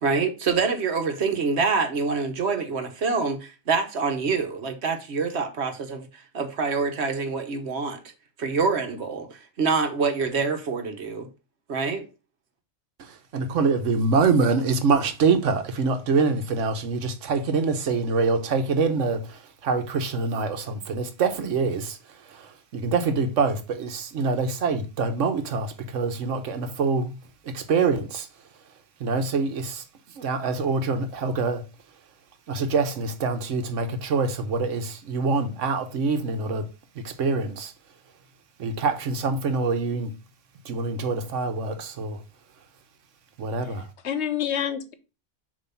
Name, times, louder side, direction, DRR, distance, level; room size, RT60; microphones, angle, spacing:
voice 1, 0.0-8.0 8.4-9.3 9.6-11.3 11.7-12.1, right 4 dB, 65° right, 1.3 m, -26 dB
voice 2, 13.3-22.0 22.4-22.5 22.7-27.1 27.5-28.3 29.0-29.8 30.2-31.6 32.5-36.6 37.0-37.7 38.6-40.1 40.7-42.2 43.4-43.8, right 4 dB, 85° right, 1.2 m, -25 dB
voice 3, 43.6-44.9, left 9 dB, 65° left, 1.1 m, -29 dB
7.0 x 3.0 x 5.5 m
omnidirectional pair, 1.2 m